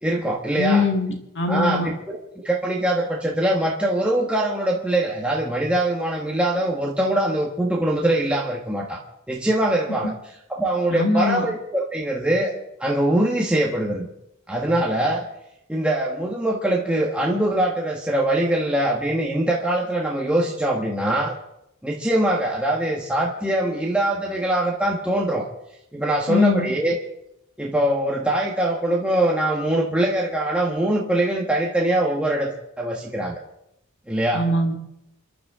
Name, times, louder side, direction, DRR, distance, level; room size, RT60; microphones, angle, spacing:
voice 1, 0.0-0.8 1.5-2.2 2.4-9.0 9.3-10.1 10.5-12.5 12.8-14.1 14.5-15.2 15.7-21.3 21.8-25.4 25.9-27.0 27.6-33.4 34.1-34.4, right 1 dB, 5° right, -3 dB, 1.5 m, -22 dB
voice 2, 0.6-1.9 10.9-11.5 26.3-26.7 34.3-34.7, left 3 dB, 60° left, 3 dB, 1.9 m, -21 dB
29.0 x 11.0 x 3.7 m, 0.84 s
head